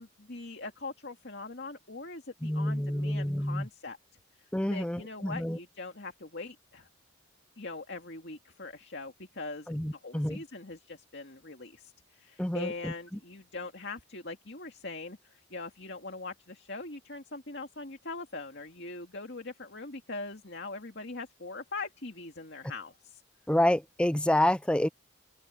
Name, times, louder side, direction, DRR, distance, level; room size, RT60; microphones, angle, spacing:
voice 1, 0.0-4.0 4.4-6.9 7.6-23.2, left 3 dB, 55° left, 2.4 m, -42 dB
voice 2, 2.4-3.7 4.5-5.6 9.7-10.4 12.4-12.9 23.5-24.9, left 1 dB, 5° left, 0.5 m, -28 dB
open air
head